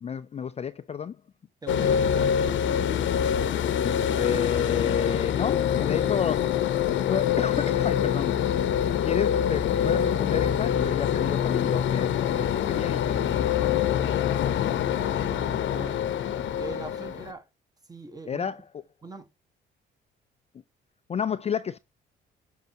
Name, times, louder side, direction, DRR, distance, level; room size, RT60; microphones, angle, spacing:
voice 1, 0.0-1.2 3.8-6.6 7.1-8.4 8.9-14.2 18.3-18.6 21.1-21.8, left 7 dB, 30° left, 0.4 m, -31 dB
voice 2, 1.6-2.5 14.9-16.0 16.6-17.5 17.9-18.5 19.0-19.3, right 3 dB, 20° right, 1.5 m, -41 dB
sound 1, 1.7-17.3, left 9 dB, 70° left, 0.8 m, -25 dB
8.0 x 5.5 x 2.8 m
cardioid pair, 90°, 20 cm